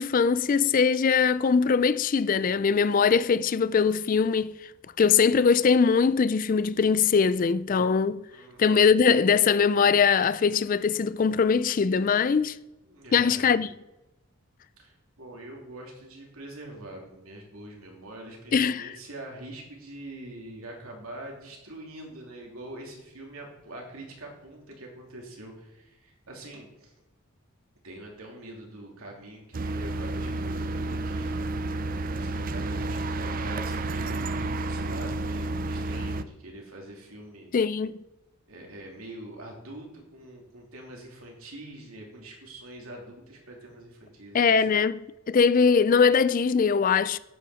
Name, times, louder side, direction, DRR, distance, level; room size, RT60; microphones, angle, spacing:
voice 1, 0.0-4.5 5.0-8.2 8.6-12.6 13.1-13.7 18.5-18.9 37.5-37.9 44.3-45.0 45.3-47.2, left 5 dB, 40° left, 0.3 m, -21 dB
voice 2, 8.3-8.6 12.9-13.5 14.8-26.9 27.8-37.5 38.5-44.6, right 1 dB, 80° right, 3.1 m, -44 dB
sound 1, 29.5-36.2, right 2 dB, 40° right, 0.4 m, -31 dB
11.0 x 8.6 x 4.9 m
head